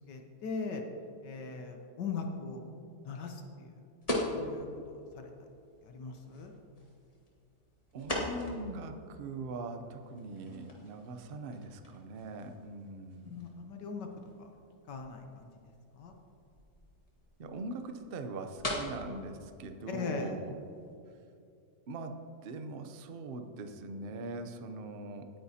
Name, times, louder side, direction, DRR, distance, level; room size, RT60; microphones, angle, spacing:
voice 1, 0.1-0.8 1.2-2.6 3.0-3.8 4.3-5.3 5.8-6.5 13.2-14.1 14.9-15.5 16.0-16.1 19.9-20.3, left 4 dB, 75° left, 4 dB, 1.5 m, -40 dB
sound 1, 4.0-21.0, left 1 dB, 20° left, 1.5 m, -43 dB
voice 2, 7.9-13.4 17.4-20.5 21.9-25.3, right 2 dB, 55° right, 7 dB, 0.6 m, -41 dB
18.5 x 9.1 x 2.8 m, 2.6 s
omnidirectional pair, 1.9 m